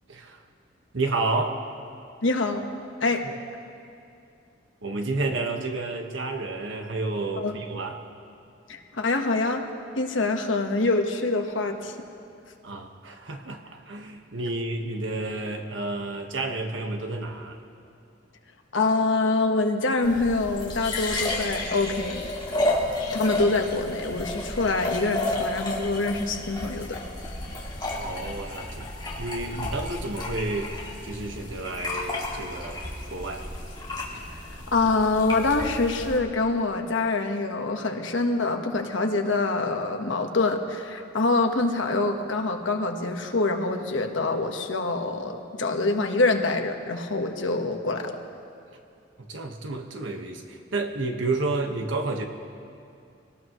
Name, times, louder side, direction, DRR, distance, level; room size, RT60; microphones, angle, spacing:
voice 1, 0.1-0.4 0.9-1.6 3.2-3.3 4.8-8.0 12.6-17.6 28.0-28.9 29.2-33.5 49.2-52.2, right 2 dB, 85° right, 4 dB, 1.4 m, -31 dB
voice 2, 2.2-2.7 3.0-3.3 7.4-7.6 8.7-9.6 10.0-11.9 18.7-22.2 23.1-27.0 34.1-34.2 34.5-48.1, left 3 dB, 90° left, 4 dB, 1.3 m, -25 dB
sound 1, 20.0-36.2, left 2 dB, 25° left, 2.2 m, -32 dB
24.5 x 18.0 x 3.1 m, 2.5 s
head